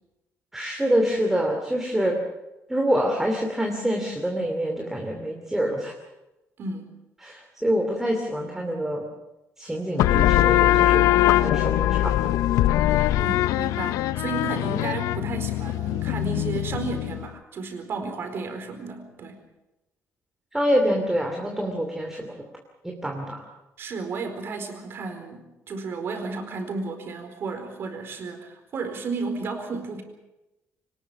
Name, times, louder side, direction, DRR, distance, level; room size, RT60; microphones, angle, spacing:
voice 1, 0.5-2.2 2.7-5.9 7.2-9.0 9.6-11.1 11.4-12.4 20.5-22.4 22.8-23.4, equal, 5° right, 1 dB, 2.7 m, -26 dB
voice 2, 6.6-6.9 13.2-19.4 23.8-30.0, right 4 dB, 45° right, 6 dB, 4.5 m, -33 dB
sound 1, 10.0-17.3, left 14 dB, 80° left, 0.7 m, -22 dB
24.0 x 19.5 x 7.2 m, 0.99 s
cardioid pair, 150°, 5 cm